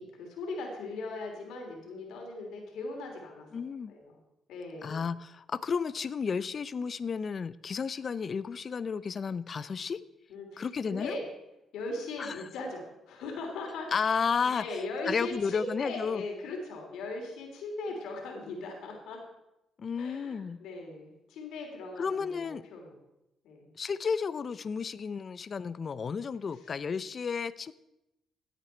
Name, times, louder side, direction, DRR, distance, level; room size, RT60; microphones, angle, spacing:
voice 1, 0.0-4.2 4.5-5.1 10.3-11.3 11.7-19.2 19.9-22.9 23.4-23.7 26.5-26.7, left 2 dB, 85° left, 1 dB, 3.2 m, -39 dB
voice 2, 3.5-3.9 4.8-10.0 10.6-11.1 12.2-12.4 13.9-16.2 19.8-20.6 22.0-22.6 23.8-27.7, left 6 dB, 45° left, 17 dB, 0.5 m, -32 dB
15.5 x 8.2 x 4.4 m, 0.90 s
cardioid pair, 90°, 0 cm